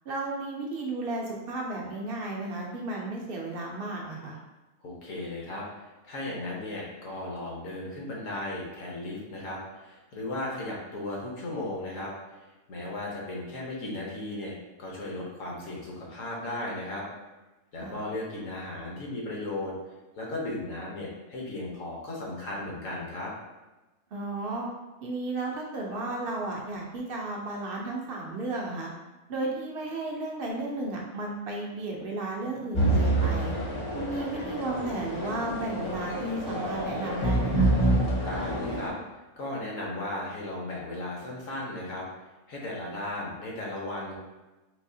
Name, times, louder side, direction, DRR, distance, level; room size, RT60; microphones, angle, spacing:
voice 1, 0.1-4.4 17.8-17.9 24.1-24.7 25.0-28.9 29.3-33.5 33.9-37.7, right 2 dB, 60° right, -1 dB, 0.6 m, -34 dB
voice 2, 4.8-5.7 6.0-12.1 12.7-17.1 17.7-19.7 20.2-23.3 38.2-38.9 39.4-42.0 42.5-44.1, left 2 dB, 70° left, -3 dB, 1.3 m, -36 dB
sound 1, 32.7-38.9, right 1 dB, 50° left, 0.3 m, -27 dB
4.0 x 2.7 x 2.6 m, 1.1 s
omnidirectional pair, 1.4 m